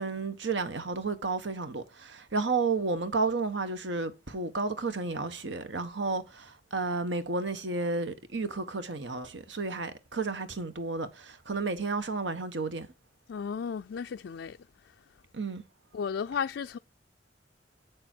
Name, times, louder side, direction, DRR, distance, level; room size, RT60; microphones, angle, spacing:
voice 1, 0.0-12.9 15.3-15.6, right 3 dB, 75° right, 1.2 m, -32 dB
voice 2, 13.3-14.6 15.9-16.8, left 6 dB, 70° left, 0.4 m, -34 dB
7.8 x 6.8 x 4.4 m
head